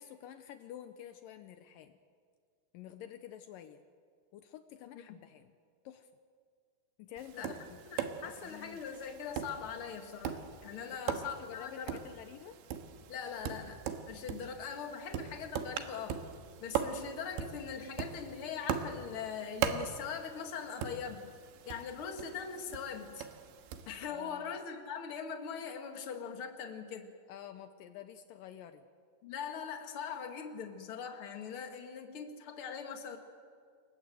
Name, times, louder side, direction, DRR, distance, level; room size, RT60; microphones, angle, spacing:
voice 1, 0.0-2.0 2.7-3.8 4.3-5.6 5.8-6.1 7.0-7.8 8.2-8.8 10.9-12.6 24.1-24.5 27.3-28.8, left 10 dB, 90° left, 9 dB, 1.9 m, -49 dB
Tap, 7.2-23.9, right 8 dB, 85° right, 3.6 m, -41 dB
voice 2, 7.9-12.0 13.1-16.2 16.6-21.3 21.7-23.3 23.9-27.1 29.2-33.2, left 6 dB, 45° left, 4 dB, 1.9 m, -41 dB
28.0 x 21.5 x 7.8 m, 2.1 s
omnidirectional pair, 5.0 m